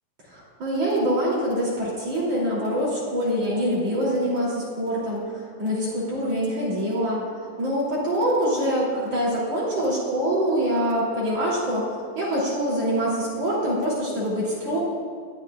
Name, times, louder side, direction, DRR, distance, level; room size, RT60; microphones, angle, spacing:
voice 1, 0.3-11.8 12.2-14.8, equal, 45° right, -6 dB, 4.2 m, -25 dB
25.0 x 13.5 x 2.5 m, 2.1 s
omnidirectional pair, 4.1 m